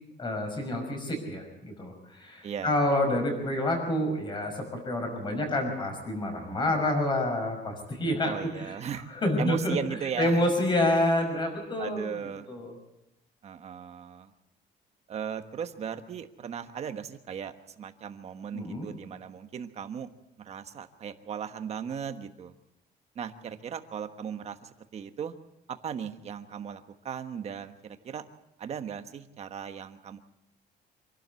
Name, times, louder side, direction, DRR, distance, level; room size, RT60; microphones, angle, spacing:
voice 1, 0.2-8.8 9.1-9.8 10.2-12.2 12.5-12.7 18.5-18.9, left 1 dB, 25° left, 4 dB, 5.8 m, -28 dB
voice 2, 2.4-2.7 8.2-9.1 9.4-10.4 11.8-12.5 13.4-14.3 15.1-20.1 20.4-22.5 23.1-25.3 25.7-28.2 28.6-30.2, right 7 dB, 35° right, 8 dB, 1.3 m, -37 dB
26.0 x 12.0 x 8.3 m, 0.86 s
cardioid pair, 175°, 18 cm